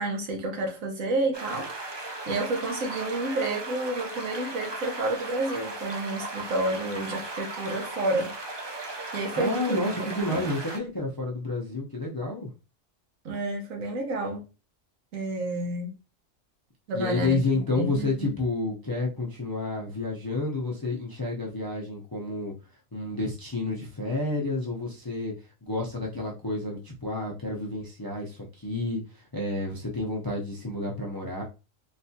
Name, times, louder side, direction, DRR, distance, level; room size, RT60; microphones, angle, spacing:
voice 1, 0.0-8.3 9.1-10.5 13.2-14.4 15.1-15.9 16.9-18.3, right 2 dB, 90° right, 1.4 m, -30 dB
sound 1, 1.3-10.8, right 2 dB, 40° right, 0.4 m, -37 dB
voice 2, 9.4-12.5 16.9-22.5 22.9-25.3 25.6-31.4, left 2 dB, 30° left, 0.4 m, -30 dB
4.0 x 2.3 x 2.7 m
omnidirectional pair, 1.4 m